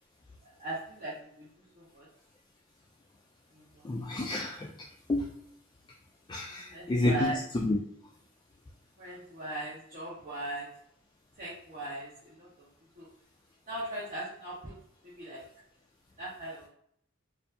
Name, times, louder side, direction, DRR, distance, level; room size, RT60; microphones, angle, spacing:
voice 1, 0.4-1.5 1.7-2.1 3.5-3.9 6.5-7.4 9.0-10.7 11.4-12.7 13.0-13.1 13.7-14.7 15.0-15.4 16.2-16.7, right 2 dB, 40° right, -9 dB, 1.2 m, -39 dB
voice 2, 3.8-5.3 6.3-7.8, left 2 dB, 20° left, 0 dB, 0.3 m, -30 dB
4.5 x 2.6 x 2.7 m, 0.67 s
head